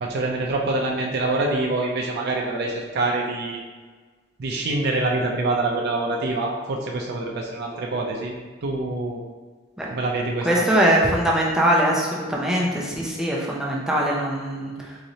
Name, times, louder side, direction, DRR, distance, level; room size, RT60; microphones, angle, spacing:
voice 1, 0.0-3.6 4.4-8.3 8.6-9.2 9.9-10.6, right 2 dB, 55° right, -1 dB, 0.4 m, -25 dB
voice 2, 10.4-14.7, right 1 dB, 5° right, -4 dB, 0.5 m, -21 dB
3.9 x 3.1 x 2.7 m, 1.4 s
head